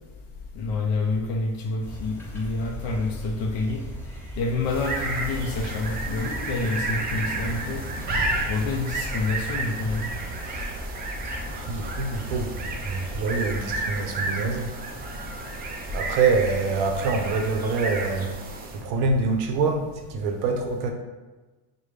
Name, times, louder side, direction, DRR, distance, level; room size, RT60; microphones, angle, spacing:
voice 1, 0.5-3.8 4.4-7.8 8.5-10.1, left 3 dB, 40° left, 0 dB, 0.5 m, -28 dB
sound 1, 1.8-14.1, left 1 dB, 5° left, 1.1 m, -38 dB
sound 2, 4.6-18.9, right 2 dB, 25° right, 0.4 m, -32 dB
voice 2, 11.5-14.7 15.9-18.3 18.7-20.9, right 4 dB, 55° right, 4 dB, 0.7 m, -26 dB
4.8 x 2.2 x 3.3 m, 1.2 s
supercardioid pair, 115°, 45 cm